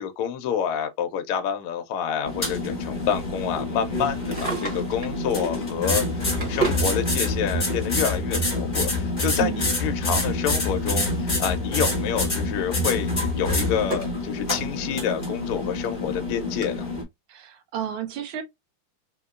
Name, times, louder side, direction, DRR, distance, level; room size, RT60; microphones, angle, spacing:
voice 1, 0.0-16.9, left 8 dB, 80° left, 1.5 m, -28 dB
sound 1, 2.2-17.0, left 2 dB, 25° left, 1.1 m, -27 dB
Drawer open or close, 4.1-5.2 5.9-6.9 8.0-8.1 9.8-11.4 11.7-12.1 12.6-14.2 14.7-14.8 15.5-15.6 15.8-15.9 16.6-16.7, right 3 dB, 25° right, 1.3 m, -33 dB
voice 2, 17.3-18.4, right 10 dB, 75° right, 1.5 m, -31 dB
3.9 x 2.8 x 2.4 m
omnidirectional pair, 2.3 m